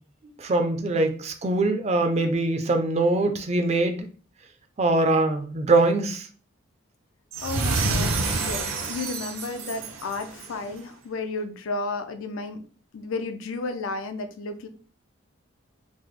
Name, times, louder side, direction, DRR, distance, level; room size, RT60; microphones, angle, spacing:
voice 1, 0.4-4.1 4.8-6.3, right 2 dB, 30° right, 6 dB, 0.4 m, -23 dB
sound 1, 7.3-10.6, right 3 dB, 80° right, 0.6 m, -28 dB
voice 2, 7.4-12.6 12.9-14.7, left 3 dB, 75° left, 8 dB, 0.4 m, -33 dB
3.3 x 2.0 x 3.1 m, 0.40 s
head